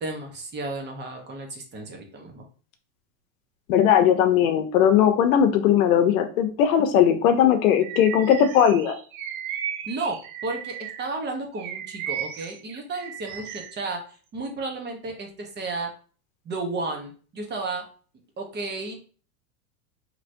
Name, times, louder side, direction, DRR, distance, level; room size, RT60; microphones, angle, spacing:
voice 1, 0.0-2.4 9.8-15.9 16.4-17.9 18.4-19.0, right 3 dB, 25° right, 3 dB, 0.9 m, -33 dB
voice 2, 3.7-8.9, left 9 dB, 70° left, 7 dB, 0.7 m, -19 dB
Bird vocalization bird call bird song, 7.8-11.1 11.6-13.8, right 9 dB, 65° right, 0.7 m, -35 dB
3.2 x 2.9 x 2.6 m, 0.40 s
hypercardioid pair, 110°, 44 cm